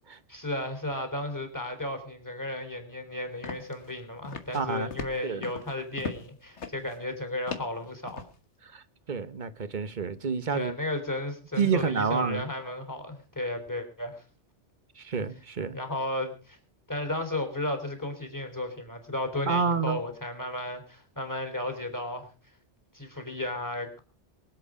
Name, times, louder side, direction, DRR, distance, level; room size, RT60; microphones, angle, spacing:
voice 1, 0.3-8.2 10.5-14.2 15.7-16.6 16.9-22.3 22.9-24.0, left 1 dB, 15° left, 3.5 m, -34 dB
sound 1, 3.4-3.9 4.2-4.6 4.9-6.3 6.6-7.0 7.5-8.4, left 5 dB, 75° left, 1.8 m, -38 dB
voice 2, 4.5-4.9 5.2-5.4 8.7-8.8 9.1-10.7 11.6-12.4 15.0-15.8 19.5-20.0, right 5 dB, 45° right, 1.2 m, -28 dB
24.0 x 8.1 x 4.9 m
omnidirectional pair, 1.2 m